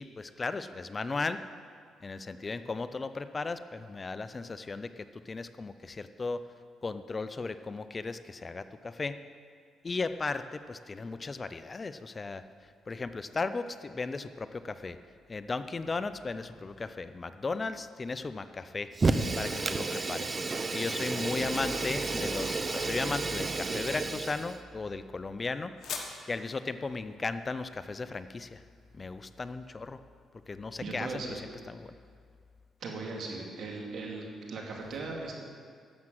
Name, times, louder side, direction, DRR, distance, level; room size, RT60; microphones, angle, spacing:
voice 1, 0.0-1.4 2.0-6.4 6.8-9.2 9.8-12.4 12.9-15.0 15.3-18.9 19.3-25.7 26.0-28.6 28.9-30.0 30.5-31.4 31.7-31.9, left 3 dB, 30° left, 12 dB, 0.5 m, -36 dB
Fire, 18.9-24.6, right 3 dB, 30° right, 0.7 m, -31 dB
sound 1, 23.5-29.3, left 5 dB, 60° left, 1.5 m, -48 dB
voice 2, 30.8-31.4 32.8-35.3, right 3 dB, 65° right, -1 dB, 2.5 m, -38 dB
12.0 x 7.5 x 7.6 m, 2.1 s
cardioid pair, 90°, 0 cm